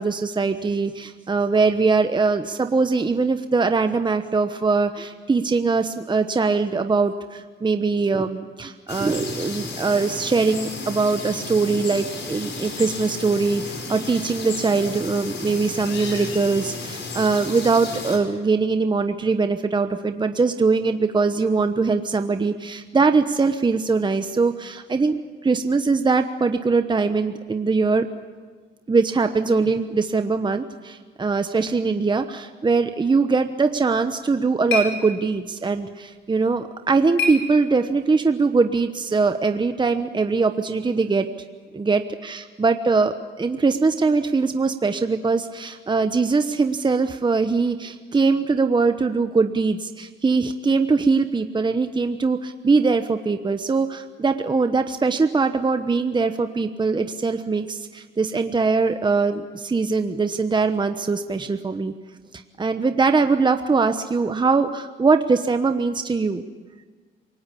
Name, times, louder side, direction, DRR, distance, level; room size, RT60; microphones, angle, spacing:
voice 1, 0.0-28.1 28.9-41.3 41.7-61.9 62.3-66.4, right 4 dB, 25° right, 8 dB, 1.1 m, -22 dB
sound 1, 8.9-18.2, left 3 dB, 65° left, 5.6 m, -33 dB
sound 2, 33.9-38.2, left 2 dB, 90° left, 3.7 m, -32 dB
28.0 x 18.5 x 8.5 m, 1.5 s
cardioid pair, 90°, 20 cm